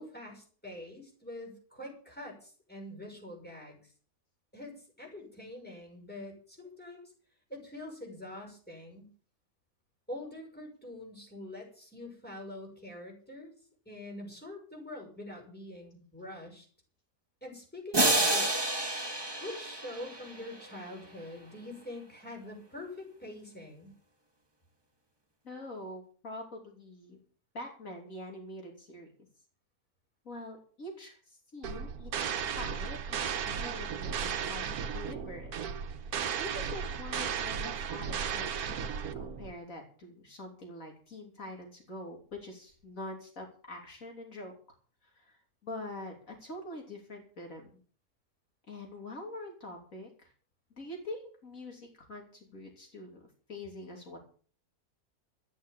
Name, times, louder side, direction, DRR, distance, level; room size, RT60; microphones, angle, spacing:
voice 1, 0.0-3.9 4.5-7.1 7.5-9.1 10.1-13.5 13.8-16.7 17.4-18.7 19.4-23.9, left 1 dB, 5° left, 0 dB, 6.4 m, -45 dB
sound 1, 17.9-20.8, right 1 dB, 15° right, 1.8 m, -29 dB
voice 2, 25.4-27.2 27.5-29.1 30.3-32.3 32.6-34.7 34.9-35.5 36.4-44.6 45.0-47.7 48.7-50.3 50.8-53.2 53.5-54.2, left 1 dB, 65° left, 1 dB, 3.5 m, -44 dB
sound 2, 31.6-39.5, right 7 dB, 90° right, 1.5 m, -35 dB
13.5 x 9.7 x 7.0 m, 0.43 s
omnidirectional pair, 1.5 m